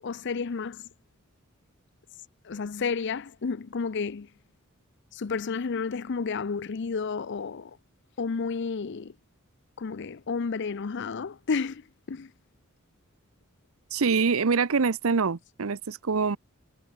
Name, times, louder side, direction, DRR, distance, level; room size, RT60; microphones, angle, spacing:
voice 1, 0.0-0.9 2.4-4.3 5.1-7.8 8.2-9.1 9.8-12.3, left 5 dB, 55° left, 0.5 m, -31 dB
voice 2, 13.9-16.4, right 5 dB, 80° right, 0.7 m, -25 dB
head